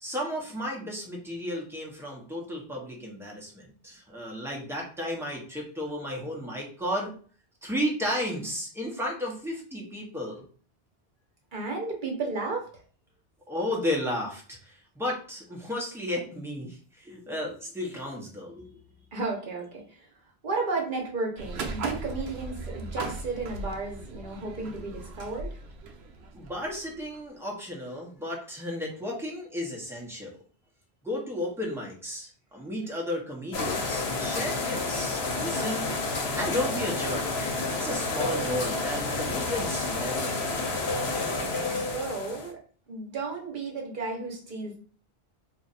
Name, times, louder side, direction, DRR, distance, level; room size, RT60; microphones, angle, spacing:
voice 1, 0.0-7.1 7.6-10.4 13.5-18.8 26.3-30.3 31.0-35.9 36.3-40.7, left 1 dB, 5° right, -2 dB, 0.8 m, -33 dB
voice 2, 11.5-12.8 19.1-20.1 20.4-25.6 41.7-42.6 42.9-44.8, right 3 dB, 55° right, 0 dB, 1.1 m, -33 dB
sound 1, 21.4-27.2, right 3 dB, 85° right, 0.8 m, -38 dB
sound 2, 33.5-42.5, left 3 dB, 85° left, 0.9 m, -30 dB
2.6 x 2.4 x 4.0 m, 0.42 s
omnidirectional pair, 1.0 m